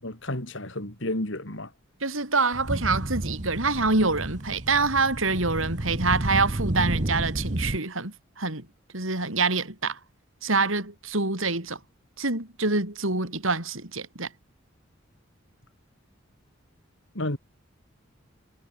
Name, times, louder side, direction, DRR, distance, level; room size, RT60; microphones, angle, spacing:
voice 1, 0.0-1.7 17.1-17.4, left 1 dB, 65° left, 3.7 m, -31 dB
voice 2, 2.0-8.7 8.9-10.0 10.4-11.8 12.2-14.3, right 3 dB, 80° right, 5.5 m, -26 dB
sound 1, 2.5-7.8, right 1 dB, 35° right, 1.2 m, -31 dB
head